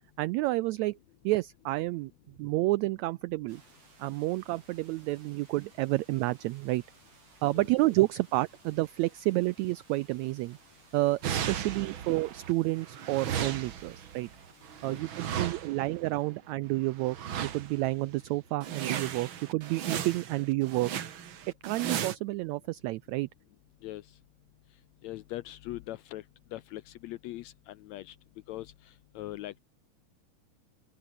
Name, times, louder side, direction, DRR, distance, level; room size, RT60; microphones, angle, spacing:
voice 1, 0.2-1.0 1.2-2.1 2.4-3.6 4.0-6.8 7.4-10.6 10.9-14.3 14.8-17.2 17.4-20.9 21.6-23.3, right 19 dB, 90° right, 1.6 m, -30 dB
sound 1, 3.5-15.0, right 4 dB, 70° right, 8.6 m, -59 dB
sound 2, 11.2-12.5 12.8-16.0 17.0-17.9 18.2-18.3 18.6-22.2, right 9 dB, 50° right, 1.6 m, -36 dB
voice 2, 14.8-15.3 23.8-24.2 24.6-29.6, left 15 dB, 75° left, 1.7 m, -42 dB
open air
omnidirectional pair, 3.7 m